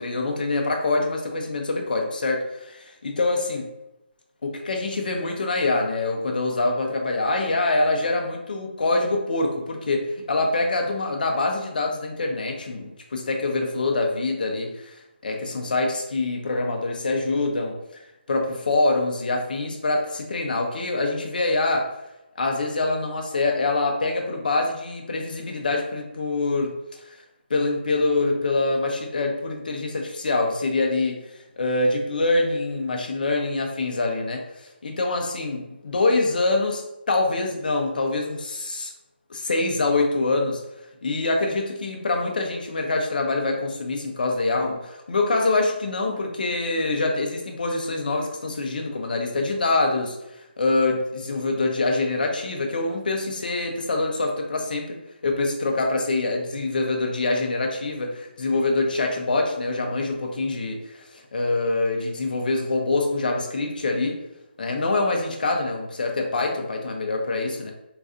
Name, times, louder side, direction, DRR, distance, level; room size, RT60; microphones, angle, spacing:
voice 1, 0.0-3.7 4.4-18.0 18.3-21.9 22.4-27.2 27.5-31.2 31.6-38.9 39.3-40.6 41.0-50.2 50.6-55.0 55.2-64.2 64.6-67.7, left 2 dB, 50° left, 2 dB, 0.6 m, -25 dB
3.8 x 2.5 x 2.5 m, 0.92 s
hypercardioid pair, 175°, 6 cm